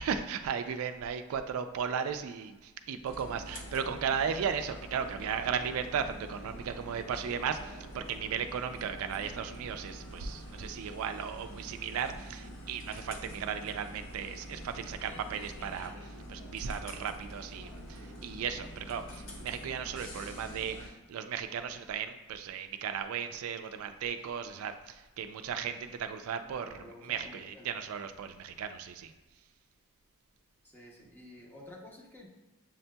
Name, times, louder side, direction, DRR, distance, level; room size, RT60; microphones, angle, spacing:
voice 1, 0.0-15.9 16.3-29.1, right 7 dB, 65° right, 8 dB, 0.3 m, -36 dB
sound 1, 3.1-20.9, equal, 65° left, 0.8 m, -46 dB
voice 2, 26.4-27.8 30.6-32.3, left 1 dB, 10° left, -3 dB, 0.7 m, -51 dB
7.3 x 2.7 x 2.2 m, 1.2 s
head